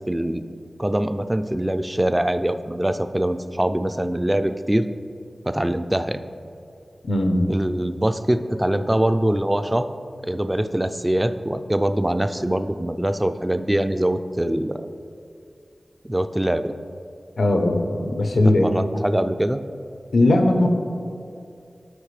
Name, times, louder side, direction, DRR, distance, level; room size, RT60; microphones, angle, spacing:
voice 1, 0.1-0.5 0.8-4.9 5.4-6.2 7.5-9.9 10.2-14.9 16.0-16.7 18.6-19.6, right 1 dB, 15° right, 10 dB, 0.3 m, -23 dB
voice 2, 7.0-7.5 17.4-18.7 20.1-20.7, left 1 dB, 90° left, 5 dB, 0.7 m, -19 dB
12.0 x 5.0 x 3.2 m, 2.5 s
wide cardioid pair, 75°, 0 cm